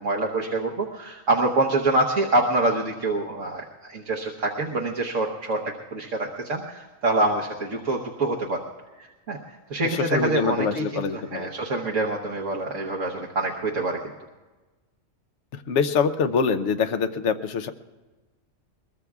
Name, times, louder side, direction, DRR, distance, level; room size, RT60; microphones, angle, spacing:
voice 1, 0.0-8.6 9.0-14.0, right 2 dB, 75° right, -2 dB, 1.5 m, -26 dB
voice 2, 9.8-11.5 15.5-17.7, left 5 dB, 65° left, 8 dB, 1.1 m, -24 dB
22.5 x 21.5 x 2.4 m, 1.2 s
omnidirectional pair, 1.3 m